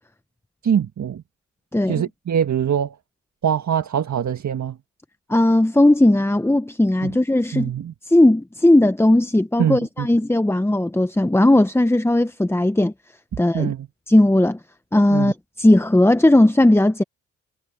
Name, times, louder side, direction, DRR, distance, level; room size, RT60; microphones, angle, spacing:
voice 1, 0.6-1.2 1.9-3.0 3.4-4.8 7.0-7.1 7.5-7.9 9.6-10.1 13.5-13.9 15.1-15.3, right 8 dB, 55° right, 1.7 m, -23 dB
voice 2, 1.7-2.0 5.3-7.7 8.1-12.9 13.4-13.7 14.1-14.6 14.9-17.0, left 1 dB, 5° left, 1.0 m, -17 dB
supercardioid pair, 55°, 35 cm